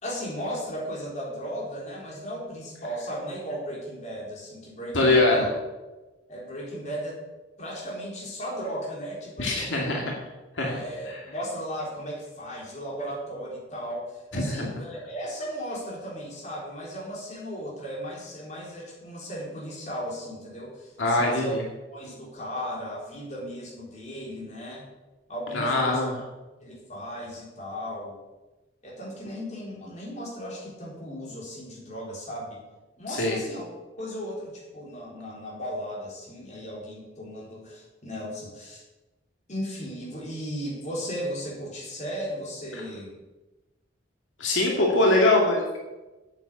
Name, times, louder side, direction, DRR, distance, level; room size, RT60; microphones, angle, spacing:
voice 1, 0.0-5.5 6.3-7.2 7.6-9.9 10.6-21.5 21.9-24.8 25.3-26.0 26.6-28.2 28.8-32.6 33.0-33.7 34.0-38.8 39.5-43.1, equal, 40° left, -4 dB, 4.1 m, -36 dB
voice 2, 4.9-5.4 9.4-10.0 10.6-10.8 11.1-11.2 14.3-14.7 21.0-21.6 25.5-26.1 33.1-33.4 44.4-45.8, left 2 dB, 80° left, -1 dB, 2.2 m, -22 dB
8.7 x 8.3 x 8.2 m, 1.1 s
head